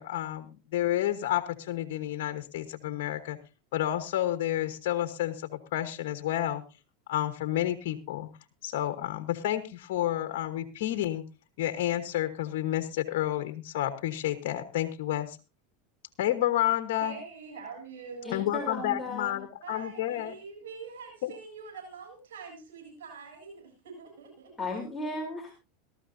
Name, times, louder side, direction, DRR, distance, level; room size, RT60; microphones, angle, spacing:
voice 1, 0.0-3.4 3.7-6.6 7.1-8.3 8.6-11.2 11.6-15.4 16.2-17.2 18.3-20.3 21.2-21.3, left 13 dB, 70° left, 8 dB, 1.2 m, -30 dB
voice 2, 17.0-18.8 19.6-24.6, right 5 dB, 85° right, 2 dB, 7.7 m, -45 dB
voice 3, 18.2-19.4 24.6-25.5, left 2 dB, 10° left, -1 dB, 3.6 m, -35 dB
19.0 x 13.5 x 2.7 m, 0.29 s
supercardioid pair, 110°, 0 cm